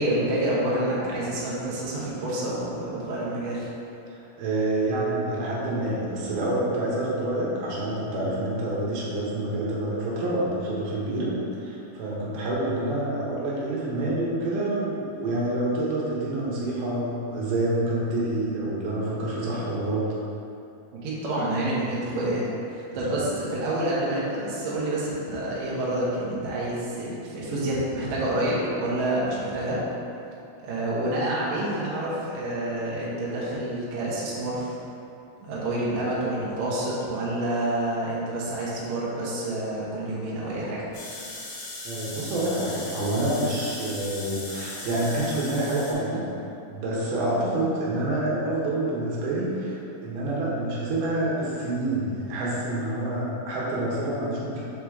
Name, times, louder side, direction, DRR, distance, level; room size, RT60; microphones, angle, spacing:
voice 1, 0.0-3.7 20.9-29.8 30.6-34.8 35.4-40.9, right 1 dB, 60° right, -7 dB, 2.0 m, -28 dB
voice 2, 4.1-20.1 22.9-23.2 41.8-46.3 46.7-54.6, right 1 dB, 80° right, -6 dB, 2.9 m, -27 dB
sound 1, 40.9-45.9, left 2 dB, 80° left, 3.5 m, -38 dB
6.8 x 4.7 x 3.6 m, 2.8 s
omnidirectional pair, 4.4 m